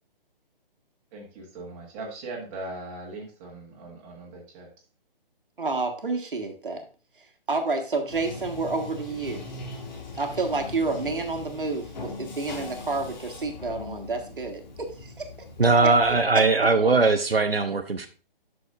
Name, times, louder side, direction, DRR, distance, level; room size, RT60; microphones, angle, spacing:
voice 1, 1.1-4.7, right 2 dB, 15° right, -1 dB, 1.6 m, -39 dB
voice 2, 5.6-6.8 7.2-9.4 10.2-15.3 15.8-16.9, right 3 dB, 60° right, 5 dB, 1.5 m, -30 dB
Bathtub (filling or washing), 8.1-16.3, left 3 dB, 50° left, 1.5 m, -40 dB
voice 3, 15.6-18.1, right 3 dB, 85° right, 7 dB, 0.8 m, -20 dB
10.0 x 6.2 x 2.4 m, 0.37 s
figure-of-eight pair, 140°, 29 cm